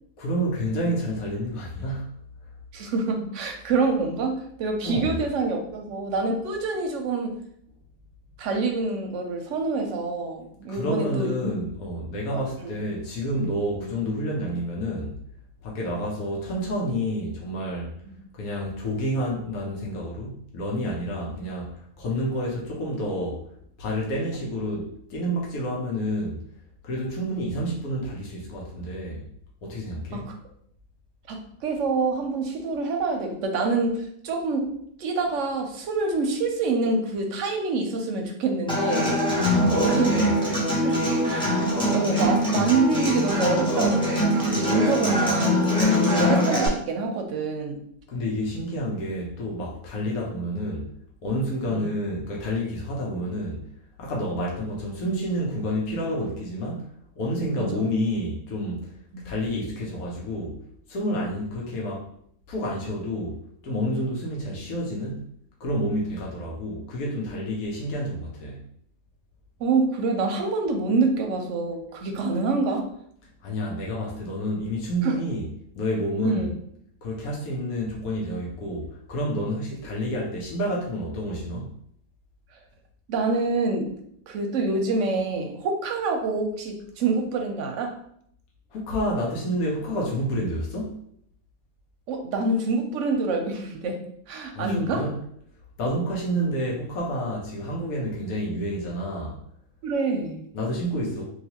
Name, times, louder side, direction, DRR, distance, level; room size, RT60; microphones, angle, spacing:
voice 1, 0.2-2.1 4.8-5.2 10.7-15.2 15.6-17.9 18.4-23.4 23.8-26.4 26.8-29.2 29.6-30.3 39.4-40.2 48.1-50.9 51.2-53.6 54.0-56.9 57.2-58.8 59.2-60.6 60.9-62.1 62.5-63.3 63.6-65.3 65.6-68.6 73.4-75.4 75.7-76.5 77.0-81.7 88.7-90.9 94.5-95.1 95.8-99.4 100.5-101.3, equal, 80° left, -3 dB, 1.2 m, -29 dB
voice 2, 2.7-7.4 8.4-11.5 12.3-12.8 13.8-13.9 18.0-18.2 21.3-21.4 30.1-30.3 31.3-34.7 35.0-39.1 39.8-40.1 40.8-41.0 41.3-47.8 51.7-51.9 57.6-57.9 59.1-59.2 69.6-72.9 75.0-75.2 76.2-76.5 83.1-83.9 84.3-88.0 92.1-94.0 94.3-95.1 99.8-100.5, right 3 dB, 70° right, 3 dB, 0.9 m, -26 dB
Human voice / Acoustic guitar, 38.7-46.7, equal, 5° left, 0.4 m, -22 dB
3.1 x 2.7 x 2.8 m, 0.68 s
omnidirectional pair, 1.5 m